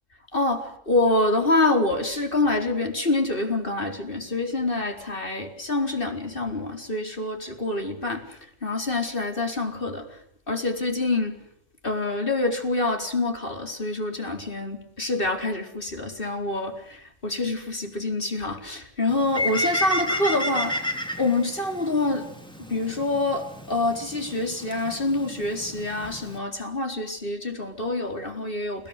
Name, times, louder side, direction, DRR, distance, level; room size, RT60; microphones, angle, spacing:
voice 1, 0.3-10.2 10.5-11.5 11.8-20.9 21.2-22.3 22.6-28.9, left 2 dB, 40° left, 5 dB, 4.5 m, -26 dB
Bird, 19.1-26.4, left 1 dB, 5° left, 3.7 m, -32 dB
30.0 x 18.0 x 8.3 m, 0.70 s
omnidirectional pair, 1.4 m